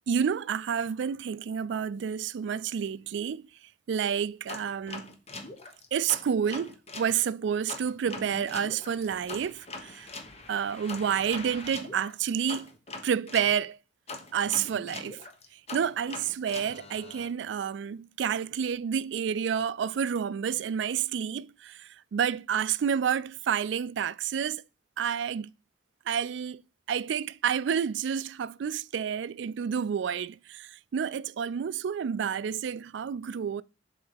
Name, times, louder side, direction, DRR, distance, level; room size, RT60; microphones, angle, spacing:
voice 1, 0.1-3.5 3.9-5.1 5.9-10.1 10.5-12.7 13.0-13.8 14.3-15.2 15.5-24.6 25.0-25.5 26.1-26.6 26.9-33.6, right 7 dB, 70° right, 0.3 m, -29 dB
sound 1, 4.5-7.1 7.7-13.5 14.1-17.3, left 3 dB, 35° left, 1.0 m, -42 dB
7.0 x 3.9 x 6.5 m
head